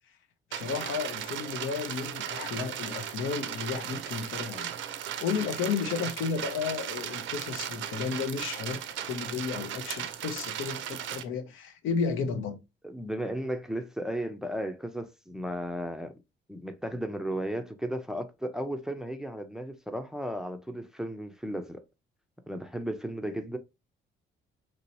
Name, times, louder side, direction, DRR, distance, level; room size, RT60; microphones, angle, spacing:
voice 1, 0.5-4.7 5.2-12.6, left 6 dB, 80° left, 0.6 m, -33 dB
sound 1, 0.5-11.2, right 10 dB, 75° right, 0.5 m, -36 dB
voice 2, 12.8-16.2 16.5-21.8 22.5-23.6, equal, 5° right, 0.4 m, -35 dB
3.0 x 2.8 x 2.8 m
cardioid pair, 90°, 20 cm